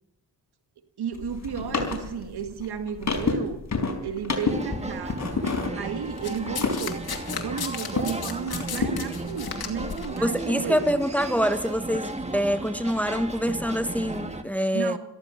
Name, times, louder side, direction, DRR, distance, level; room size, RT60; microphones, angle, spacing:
voice 1, 1.0-3.6 4.0-5.2 5.5-7.1 7.4-10.9 14.7-15.0, right 7 dB, 70° right, 1.8 m, -33 dB
sound 1, 1.1-8.2 8.5-10.0, left 4 dB, 45° left, 4.8 m, -30 dB
sound 2, 4.5-14.4, right 2 dB, 15° right, 1.8 m, -35 dB
Domestic sounds home sounds, 6.2-10.2 11.1-11.2, left 7 dB, 65° left, 2.6 m, -35 dB
voice 2, 10.2-15.0, equal, 5° left, 1.3 m, -25 dB
17.5 x 14.5 x 5.8 m
cardioid pair, 55°, 40 cm